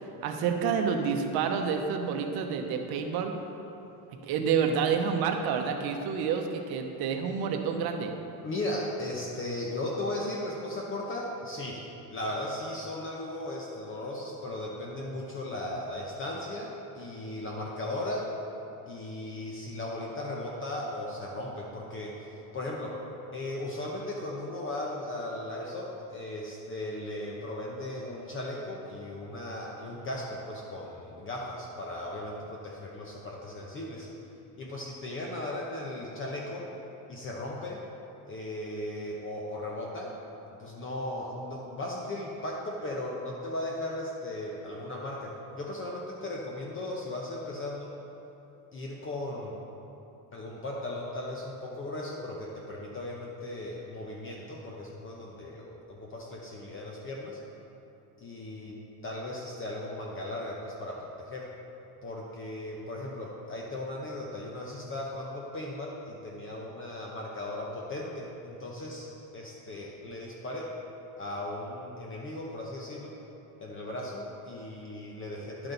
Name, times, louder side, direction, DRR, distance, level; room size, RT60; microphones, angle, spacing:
voice 1, 0.2-3.3 4.2-8.1, right 6 dB, 65° right, 4 dB, 0.9 m, -28 dB
voice 2, 8.4-11.8 12.1-18.3 18.9-23.0 23.3-34.1 34.6-36.7 37.1-37.8 38.3-40.1 40.6-47.9 48.7-49.6 50.3-57.4 58.2-61.5 62.0-70.7 71.2-73.2 73.6-75.7, left 1 dB, 30° left, -2 dB, 0.8 m, -37 dB
11.0 x 6.0 x 3.9 m, 2.9 s
cardioid pair, 140°, 41 cm